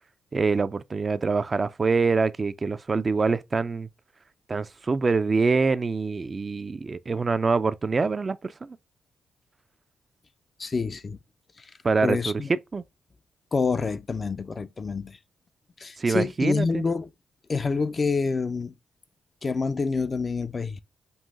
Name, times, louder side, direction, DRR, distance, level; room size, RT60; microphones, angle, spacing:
voice 1, 0.3-3.9 4.5-8.8 11.8-12.3 12.7-12.8 16.0-16.8, right 4 dB, 40° right, 0.3 m, -25 dB
voice 2, 10.6-11.2 11.6-11.7 12.0-12.5 13.5-15.2 15.8-17.1 17.5-18.7 19.4-20.8, left 4 dB, 40° left, 0.4 m, -27 dB
5.4 x 2.5 x 2.3 m
supercardioid pair, 50°, 0 cm